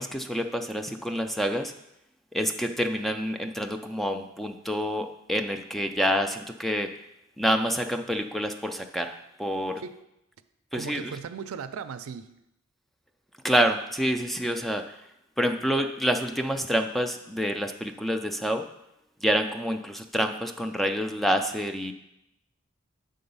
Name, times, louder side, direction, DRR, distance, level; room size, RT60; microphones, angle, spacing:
voice 1, 0.0-1.7 2.3-6.9 7.4-9.8 10.7-11.1 13.4-15.0 15.4-18.7 19.2-21.9, equal, ahead, 6 dB, 0.3 m, -27 dB
voice 2, 10.7-12.3, right 6 dB, 90° right, 10 dB, 0.4 m, -37 dB
7.7 x 3.8 x 5.4 m, 0.85 s
head